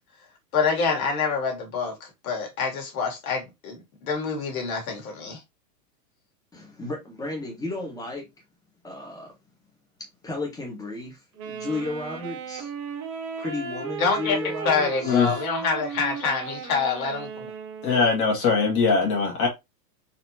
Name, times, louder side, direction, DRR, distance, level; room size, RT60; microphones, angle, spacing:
voice 1, 0.5-5.4 14.0-17.5, left 5 dB, 60° left, 1.9 m, -26 dB
voice 2, 6.5-8.3 8.8-9.3 10.2-11.2 11.5-12.7 13.4-15.2, left 2 dB, 5° left, 1.2 m, -33 dB
Wind instrument woodwind instrument, 11.4-18.3, right 6 dB, 25° right, 0.4 m, -35 dB
voice 3, 15.0-15.4 17.8-19.5, left 5 dB, 25° left, 1.6 m, -21 dB
4.2 x 3.0 x 2.7 m
hypercardioid pair, 145°, 48 cm